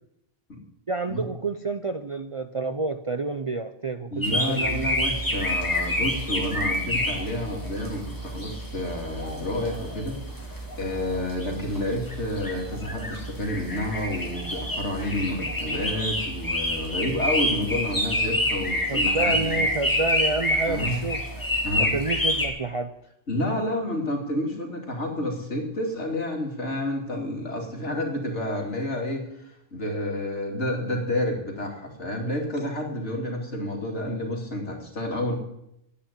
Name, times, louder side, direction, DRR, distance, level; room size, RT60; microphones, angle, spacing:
voice 1, 0.9-4.9 18.9-21.5 21.8-22.9, right 3 dB, 35° right, 8 dB, 0.5 m, -29 dB
voice 2, 4.1-19.6 20.7-21.0 21.6-21.9 23.3-29.4 29.7-35.4, left 1 dB, 70° left, 1 dB, 3.0 m, -30 dB
sound 1, 4.2-22.5, left 1 dB, 15° left, 2.2 m, -28 dB
10.5 x 8.7 x 10.0 m, 0.80 s
omnidirectional pair, 1.2 m